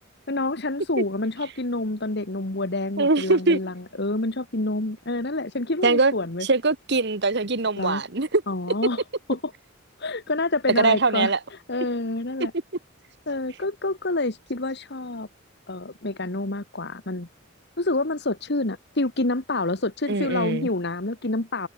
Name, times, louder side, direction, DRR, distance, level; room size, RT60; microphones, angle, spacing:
voice 1, 0.3-6.5 7.8-8.0 8.5-9.0 9.3-9.5 10.0-11.3 11.7-12.5 13.3-15.3 15.7-17.3 17.8-21.7, left 2 dB, 55° left, 1.9 m, -27 dB
voice 2, 3.0-3.6 5.8-6.1 6.4-8.4 10.8-11.4 20.1-20.7, right 3 dB, 60° right, 1.7 m, -22 dB
open air
head